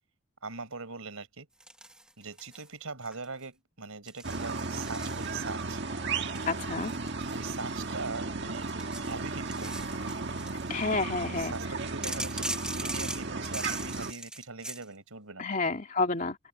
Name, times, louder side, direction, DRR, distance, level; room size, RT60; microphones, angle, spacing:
voice 1, 0.4-1.5 2.2-5.8 7.3-8.7 9.0-10.1 11.2-15.5, right 4 dB, 90° right, 4.9 m, -41 dB
sound 1, 1.6-2.7 3.0-3.4 4.1-5.7 6.3-8.1 8.5-10.7 12.0-14.8, right 1 dB, 5° right, 1.5 m, -40 dB
sound 2, 4.2-14.1, right 3 dB, 55° right, 1.8 m, -35 dB
voice 2, 6.5-6.9 10.7-11.5 15.4-16.4, left 3 dB, 35° left, 2.6 m, -29 dB
head